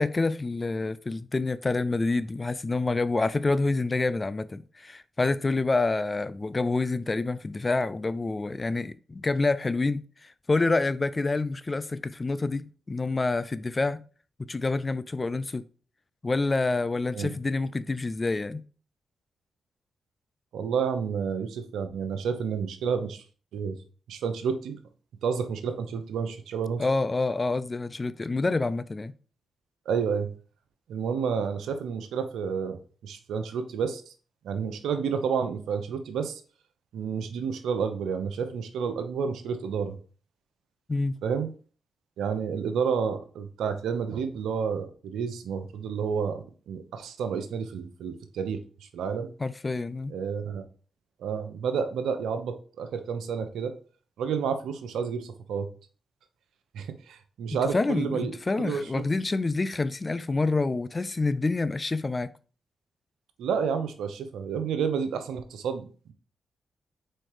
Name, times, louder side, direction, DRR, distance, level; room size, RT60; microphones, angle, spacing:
voice 1, 0.0-14.0 14.5-15.6 16.2-18.6 26.8-29.1 40.9-41.2 49.4-50.1 57.7-62.3, left 3 dB, 35° left, 0.4 m, -27 dB
voice 2, 20.5-23.2 23.5-23.7 24.1-24.8 25.2-26.9 29.9-30.3 30.9-32.8 33.0-34.0 34.4-36.4 36.9-40.0 41.2-41.5 42.2-48.6 48.9-49.3 50.1-50.6 51.2-53.7 54.2-55.7 56.7-59.0 63.4-66.1, right 6 dB, 85° right, 0.7 m, -30 dB
4.4 x 4.4 x 4.8 m
supercardioid pair, 50°, 0 cm